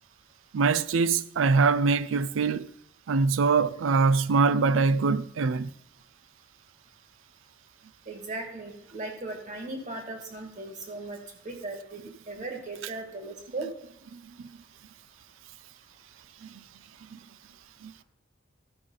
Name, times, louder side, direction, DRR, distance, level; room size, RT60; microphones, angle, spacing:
voice 1, 0.5-2.7 3.1-5.7 14.1-14.2 17.1-17.2 17.8-17.9, right 4 dB, 85° right, 0.4 m, -23 dB
voice 2, 8.1-11.2 11.4-12.0 12.3-13.7, right 2 dB, 40° right, 1.9 m, -37 dB
13.0 x 5.1 x 5.4 m
head